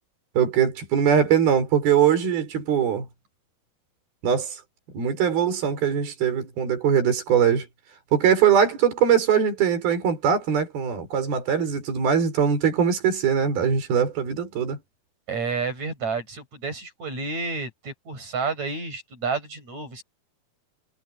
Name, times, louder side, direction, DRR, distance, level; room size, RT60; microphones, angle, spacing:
voice 1, 0.4-3.1 4.2-4.5 4.9-7.7 8.1-14.8, right 8 dB, 60° right, 7.0 m, -21 dB
voice 2, 15.3-20.0, right 4 dB, 40° right, 9.2 m, -30 dB
omnidirectional pair, 4.9 m